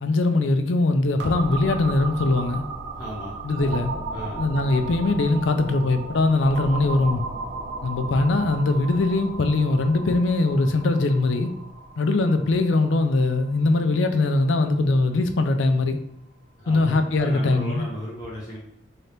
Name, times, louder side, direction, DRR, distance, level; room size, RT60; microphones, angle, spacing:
voice 1, 0.0-2.6 3.4-3.9 4.4-7.2 7.8-11.5 12.0-16.0 16.7-17.9, left 2 dB, 75° left, 7 dB, 0.4 m, -21 dB
sound 1, 1.2-14.7, right 3 dB, 70° right, 0.8 m, -35 dB
voice 2, 2.9-3.4 4.1-4.4 16.6-18.6, equal, 20° left, -6 dB, 0.8 m, -36 dB
3.7 x 2.8 x 3.4 m, 0.82 s
head